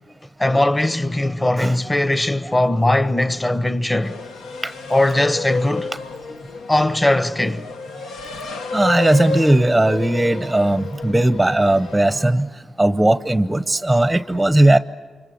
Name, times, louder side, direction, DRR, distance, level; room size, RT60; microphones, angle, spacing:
voice 1, 0.4-4.2 4.9-5.9 6.7-7.6, left 1 dB, 20° left, 1.0 m, -19 dB
sound 1, 4.0-12.2, left 3 dB, 90° left, 1.1 m, -31 dB
voice 2, 8.4-14.8, right 1 dB, 5° right, 0.7 m, -18 dB
29.0 x 25.0 x 7.8 m
cardioid pair, 75°, 0 cm